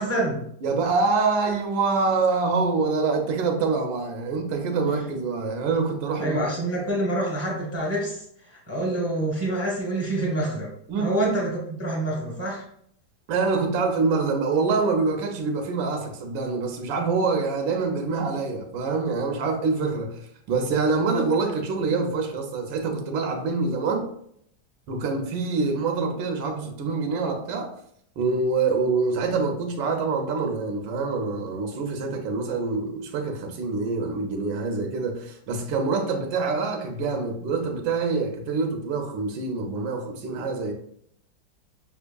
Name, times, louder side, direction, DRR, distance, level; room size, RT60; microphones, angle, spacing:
voice 1, 0.0-0.4 6.2-10.7 11.0-12.6, right 1 dB, 10° left, 1.0 m, -27 dB
voice 2, 0.6-6.4 10.9-11.1 13.3-24.1 24.9-27.7 28.2-40.7, right 4 dB, 90° right, 1.4 m, -25 dB
5.5 x 3.5 x 2.2 m
omnidirectional pair, 2.0 m